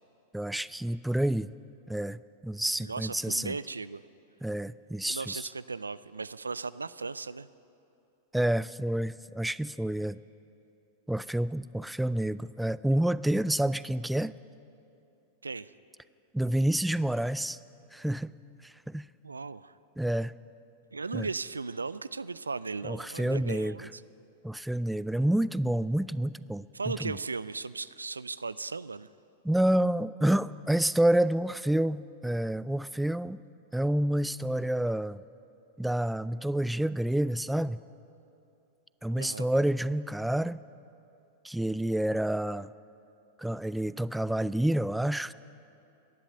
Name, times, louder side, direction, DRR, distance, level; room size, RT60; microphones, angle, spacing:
voice 1, 0.3-1.5 1.9-3.6 4.4-5.5 8.3-10.2 11.1-14.4 16.3-17.6 17.9-18.4 18.6-19.1 20.0-20.3 21.1-21.3 22.8-23.9 24.4-27.2 29.4-33.4 33.7-35.2 35.8-37.8 39.0-40.6 41.4-42.7 43.4-45.3, right 1 dB, 5° right, 18 dB, 0.3 m, -28 dB
voice 2, 2.8-4.0 5.1-7.5 15.4-15.7 19.2-19.7 20.9-24.0 26.7-29.1 39.1-39.5, right 4 dB, 90° right, 17 dB, 0.4 m, -37 dB
18.0 x 11.0 x 6.7 m, 2.7 s
hypercardioid pair, 100°, 0 cm